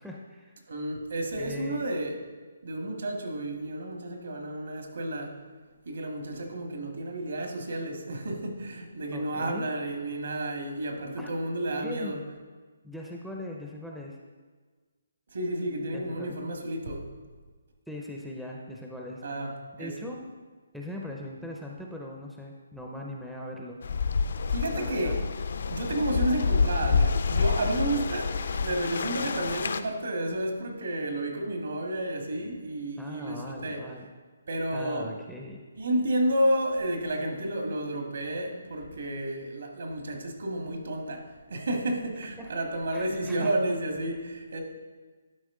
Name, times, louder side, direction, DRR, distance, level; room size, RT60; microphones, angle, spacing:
voice 1, 0.0-0.5 1.4-1.8 9.1-9.7 11.2-11.3 11.8-12.1 12.8-14.2 15.9-16.3 17.9-19.2 19.8-20.2 20.7-23.8 24.7-25.2 27.9-28.0 33.0-34.1 34.7-35.6 42.4-42.5 42.9-43.5, left 1 dB, ahead, -2 dB, 0.4 m, -40 dB
voice 2, 0.7-2.1 2.6-5.4 5.8-12.2 15.3-17.1 19.2-19.9 24.5-25.2 25.7-28.3 28.6-33.9 34.5-35.1 35.7-44.6, right 1 dB, 70° right, 2 dB, 1.6 m, -31 dB
sound 1, 23.8-29.8, left 5 dB, 60° left, 0.4 m, -28 dB
11.5 x 4.8 x 3.7 m, 1.4 s
hypercardioid pair, 170°, 0 cm